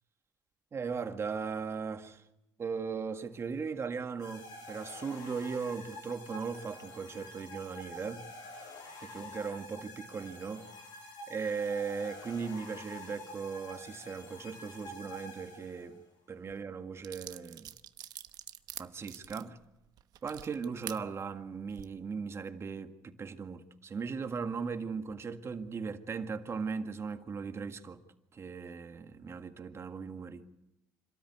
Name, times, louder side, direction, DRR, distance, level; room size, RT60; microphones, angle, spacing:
voice 1, 0.7-2.2 2.6-8.3 9.0-10.8 11.3-16.0 16.3-17.7 18.8-19.6 20.2-28.0 28.3-30.5, right 5 dB, 40° right, 1.8 m, -38 dB
sound 1, 4.2-16.0, left 2 dB, 75° left, 6.7 m, -48 dB
sound 2, 16.5-16.6 17.0-21.0 21.6-21.8, right 11 dB, 65° right, 1.0 m, -46 dB
26.0 x 13.0 x 9.6 m
supercardioid pair, 80°, 7 cm